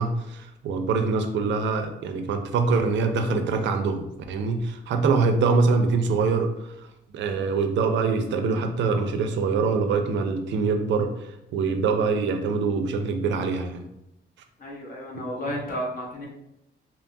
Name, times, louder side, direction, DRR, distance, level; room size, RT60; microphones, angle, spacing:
voice 1, 0.0-6.9 7.1-13.8, right 4 dB, 65° right, 6 dB, 0.4 m, -24 dB
voice 2, 14.6-16.3, equal, 45° left, -3 dB, 0.7 m, -32 dB
2.8 x 2.2 x 2.6 m, 0.83 s
cardioid pair, 90°, 20 cm